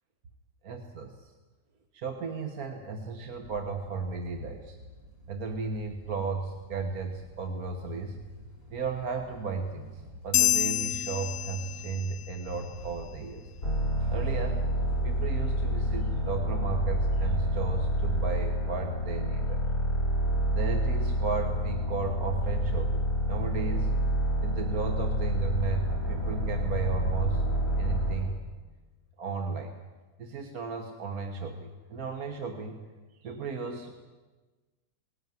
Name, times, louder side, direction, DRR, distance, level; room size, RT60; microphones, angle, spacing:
voice 1, 0.6-1.3 1.9-4.8 5.3-8.2 8.7-13.5 14.1-14.7 15.0-19.6 20.5-23.0 23.3-23.9 24.4-27.4 27.8-28.4 29.2-29.7 30.2-32.8 33.2-33.9, right 4 dB, 55° right, 4 dB, 1.7 m, -34 dB
sound 1, 3.4-16.3, left 1 dB, 20° right, 6.7 m, -47 dB
sound 2, 10.3-12.2, left 12 dB, 65° left, 1.3 m, -27 dB
sound 3, 13.6-28.3, right 1 dB, 30° left, 6.7 m, -28 dB
20.0 x 16.5 x 9.3 m, 1.3 s
omnidirectional pair, 2.0 m